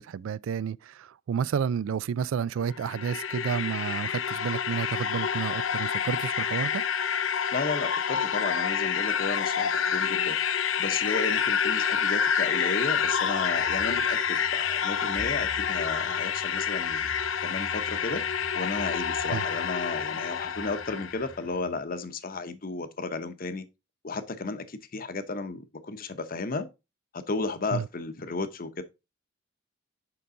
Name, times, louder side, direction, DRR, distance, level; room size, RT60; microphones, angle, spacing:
voice 1, 0.0-6.8 19.3-19.4 27.7-27.8, right 7 dB, 90° right, 0.3 m, -31 dB
sound 1, 2.6-21.3, left 7 dB, 80° left, 0.7 m, -28 dB
voice 2, 7.5-10.4 10.8-17.1 17.4-18.2 18.5-23.6 24.0-26.7 27.1-28.8, left 3 dB, 45° left, 0.8 m, -33 dB
sound 2, 13.0-21.8, equal, 5° left, 0.9 m, -47 dB
6.9 x 5.3 x 3.7 m
head